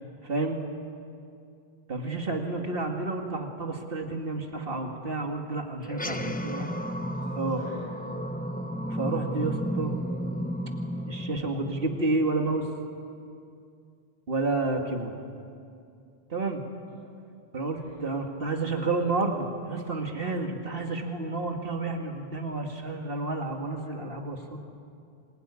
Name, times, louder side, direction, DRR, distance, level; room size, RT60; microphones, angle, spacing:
voice 1, 0.2-0.6 1.9-6.7 7.4-7.6 8.9-10.0 11.1-12.7 14.3-15.1 16.3-16.6 17.5-24.6, right 3 dB, 65° right, 3 dB, 2.4 m, -30 dB
sound 1, 5.8-12.6, equal, 10° left, 0.8 m, -33 dB
voice 2, 6.2-8.0 11.3-11.5 16.9-17.0 17.7-18.0, left 1 dB, 45° right, -5 dB, 6.1 m, -49 dB
27.0 x 21.5 x 9.9 m, 2.4 s
omnidirectional pair, 1.0 m